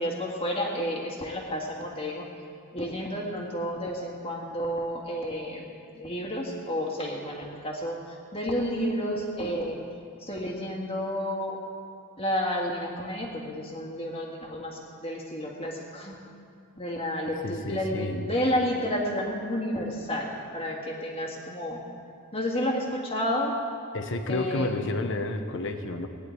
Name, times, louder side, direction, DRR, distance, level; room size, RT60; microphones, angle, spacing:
voice 1, 0.0-2.3 2.7-5.6 5.9-9.8 10.2-11.6 12.2-16.2 16.8-20.3 20.5-21.8 22.3-23.5 24.3-24.7, equal, 25° left, -1 dB, 1.8 m, -31 dB
voice 2, 17.4-18.3 23.9-26.1, left 2 dB, 55° left, 6 dB, 1.0 m, -30 dB
18.5 x 10.5 x 4.6 m, 2.4 s
head